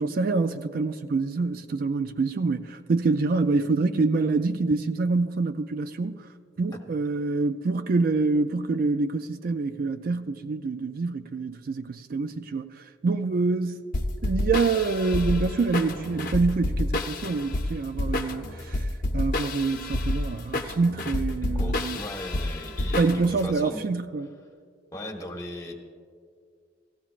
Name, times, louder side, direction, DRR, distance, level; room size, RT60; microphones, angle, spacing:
voice 1, 0.0-6.3 6.6-13.9 14.2-18.9 19.1-22.0 23.0-24.3, right 3 dB, 50° right, 0.4 m, -26 dB
sound 1, 13.9-23.5, left 1 dB, 45° left, 0.8 m, -29 dB
voice 2, 21.4-23.8 24.9-25.7, left 1 dB, 15° left, 1.3 m, -37 dB
17.5 x 15.0 x 2.5 m
head